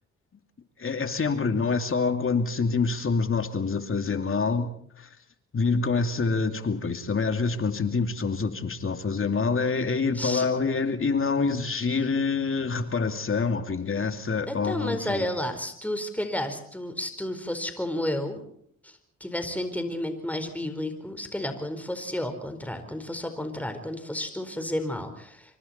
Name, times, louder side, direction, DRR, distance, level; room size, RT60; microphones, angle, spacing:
voice 1, 0.8-5.1 5.5-15.3, left 4 dB, 40° left, 7 dB, 2.6 m, -26 dB
voice 2, 10.1-10.4 14.5-18.4 18.8-18.9 19.2-25.6, left 1 dB, 5° left, 7 dB, 4.4 m, -31 dB
27.0 x 24.5 x 4.4 m, 0.65 s
supercardioid pair, 60°, 32 cm